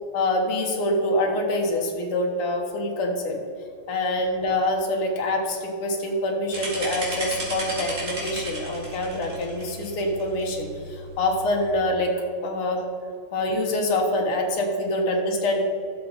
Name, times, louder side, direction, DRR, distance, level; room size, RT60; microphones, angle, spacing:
voice 1, 0.1-3.4 3.9-12.8 13.3-15.6, left 1 dB, 85° left, 1 dB, 2.3 m, -25 dB
sound 1, 6.5-11.7, equal, 35° right, 2.6 m, -34 dB
12.0 x 6.9 x 4.1 m, 2.6 s
omnidirectional pair, 2.4 m